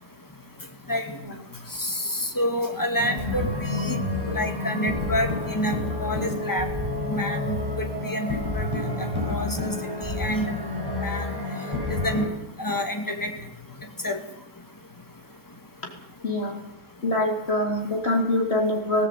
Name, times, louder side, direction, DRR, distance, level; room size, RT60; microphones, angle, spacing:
voice 1, 1.8-4.0 4.4-5.7 6.0-6.7 7.1-8.7 9.2-9.8 10.2-10.6 11.0-11.3 11.9-12.3 12.6-13.3 14.0-14.2, left 1 dB, 10° left, 4 dB, 2.4 m, -28 dB
sound 1, 3.0-12.3, left 2 dB, 10° right, 6.0 m, -29 dB
voice 2, 16.2-16.6 17.0-19.1, left 1 dB, 35° left, 1 dB, 3.9 m, -24 dB
18.0 x 17.5 x 8.7 m, 0.87 s
omnidirectional pair, 2.0 m